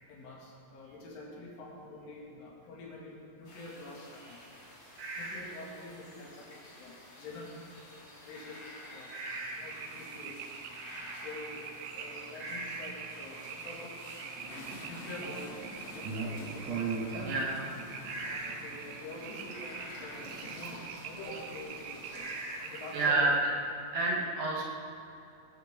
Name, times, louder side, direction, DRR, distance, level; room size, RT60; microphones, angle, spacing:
voice 1, 0.0-4.4 5.2-7.6 7.9-8.6 8.9-9.1 9.5-10.4 10.9-14.0 14.5-17.1 18.2-22.3 22.5-23.3, left 2 dB, 70° left, -4 dB, 4.9 m, -47 dB
sound 1, 3.4-23.1, left 1 dB, 30° left, 2.4 m, -51 dB
voice 2, 5.0-5.5 9.1-9.7 12.4-12.8 17.2-17.7 18.0-18.6 22.1-22.7 22.9-23.3 23.9-24.6, right 3 dB, 65° right, -3 dB, 3.2 m, -32 dB
sound 2, 9.2-23.1, right 7 dB, 85° right, 3.4 m, -45 dB
sound 3, 14.4-22.3, right 4 dB, 45° right, 2.4 m, -42 dB
19.5 x 13.0 x 3.8 m, 2.6 s
omnidirectional pair, 5.9 m